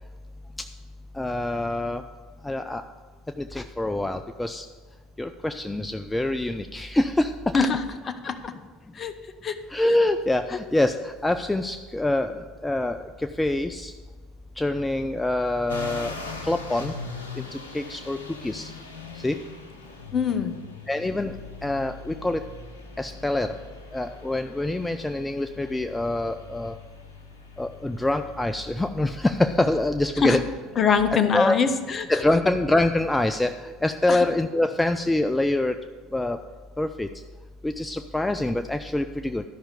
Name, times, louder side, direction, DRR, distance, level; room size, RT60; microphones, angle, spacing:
voice 1, 1.2-2.0 2.4-2.8 3.4-4.7 5.2-7.7 9.7-13.9 14.6-16.1 16.4-16.9 17.4-17.5 17.7-18.7 19.1-19.4 20.9-21.3 21.6-22.4 23.0-23.6 23.9-26.8 27.6-30.4 31.1-31.6 32.1-35.8 36.1-36.4 36.8-37.1 37.6-39.4, left 2 dB, 10° left, 8 dB, 0.4 m, -25 dB
voice 2, 8.1-8.5 8.9-9.1 9.4-9.6 20.1-20.6 30.2-30.4 30.8-32.1 34.1-34.2, left 6 dB, 35° left, 10 dB, 0.9 m, -23 dB
sound 1, 15.7-32.2, left 4 dB, 80° left, 0.8 m, -42 dB
12.5 x 5.7 x 6.7 m, 1.5 s
figure-of-eight pair, 65°, 0 cm